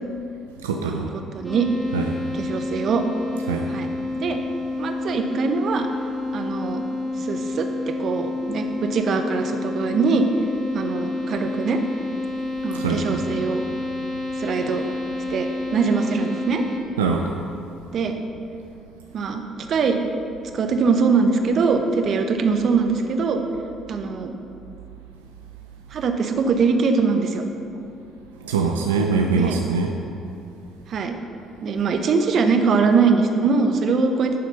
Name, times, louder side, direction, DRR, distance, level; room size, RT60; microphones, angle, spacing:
voice 1, 0.6-1.1 1.9-2.2 3.5-3.7 12.7-13.2 17.0-17.4 28.4-29.9, right 4 dB, 90° right, 2 dB, 0.4 m, -23 dB
voice 2, 1.3-1.7 2.3-3.0 3.7-3.9 4.2-4.4 4.8-5.9 6.3-6.8 7.2-10.3 10.7-11.8 12.6-13.6 14.3-14.8 15.3-16.6 17.9-18.2 19.1-19.4 19.7-20.0 20.5-23.4 23.9-24.3 25.9-27.4 29.3-29.6 30.9-31.2 31.6-34.3, right 5 dB, 55° right, 5 dB, 0.8 m, -22 dB
sound 1, 1.4-16.8, left 2 dB, ahead, 1.9 m, -29 dB
10.0 x 4.3 x 5.6 m, 2.6 s
hypercardioid pair, 55°, 0 cm